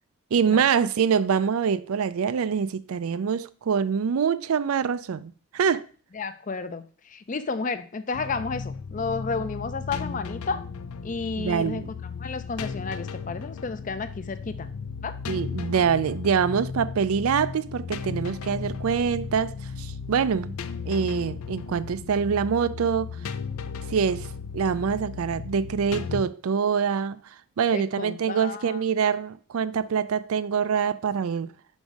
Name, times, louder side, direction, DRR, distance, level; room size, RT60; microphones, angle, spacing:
voice 1, 0.3-5.8 11.4-11.9 15.3-20.5 20.9-23.2 23.9-24.3 24.5-27.2 27.6-31.5, right 6 dB, 80° right, 0.4 m, -25 dB
voice 2, 6.1-10.6 11.0-11.8 12.2-14.7 15.0-15.1 27.7-28.8, left 4 dB, 35° left, 0.5 m, -32 dB
sound 1, 8.1-26.2, left 5 dB, 90° left, 0.5 m, -35 dB
5.3 x 5.3 x 4.7 m
head